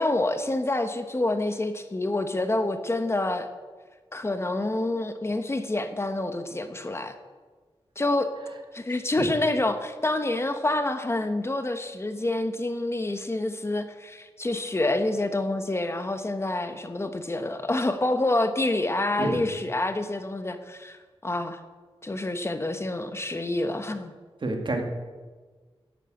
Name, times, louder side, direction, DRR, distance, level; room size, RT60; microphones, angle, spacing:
voice 1, 0.0-3.5 4.1-7.1 8.0-8.3 8.7-21.6 22.0-24.1, left 2 dB, 25° left, 8 dB, 1.0 m, -27 dB
voice 2, 24.4-24.8, right 2 dB, 55° right, 3 dB, 2.1 m, -28 dB
11.5 x 9.0 x 9.0 m, 1.4 s
wide cardioid pair, 120°, 10 cm